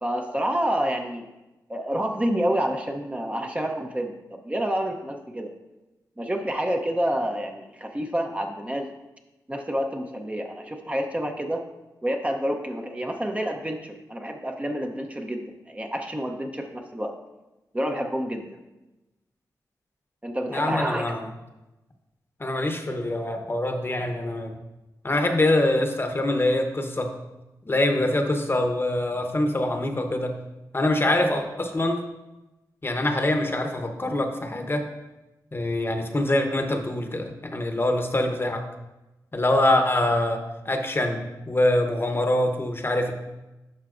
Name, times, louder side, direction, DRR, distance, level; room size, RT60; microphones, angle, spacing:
voice 1, 0.0-1.3 1.7-5.5 6.2-8.9 9.5-11.6 12.0-17.1 17.7-18.6 20.2-21.2, equal, 15° right, 3 dB, 0.7 m, -28 dB
voice 2, 20.5-21.3 22.4-24.6 25.0-27.1 27.7-30.3 30.7-32.0 32.8-34.9 35.5-38.6 39.3-41.2 41.5-43.1, left 1 dB, 30° left, 5 dB, 0.9 m, -24 dB
10.5 x 5.6 x 2.5 m, 1.0 s
cardioid pair, 65°, 8 cm